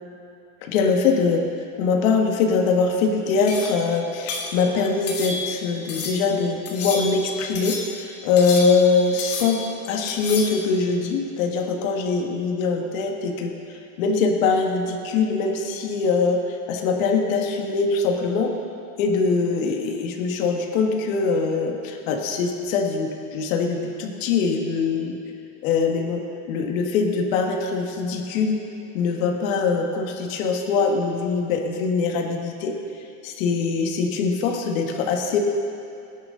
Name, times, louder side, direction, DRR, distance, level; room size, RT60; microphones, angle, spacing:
voice 1, 0.6-1.5 1.8-18.5 19.0-25.1 25.6-28.6 28.9-32.8 33.2-35.4, left 4 dB, 75° left, 2 dB, 1.8 m, -23 dB
sound 1, 3.5-3.9 4.3-4.6 5.1-5.6 5.9-6.3 6.6-7.3 7.5-8.0 8.4-8.9 9.2-9.7 10.1-10.6, left 4 dB, 35° left, 2.3 m, -31 dB
23.0 x 10.5 x 3.9 m, 2.7 s
cardioid pair, 170°, 40 cm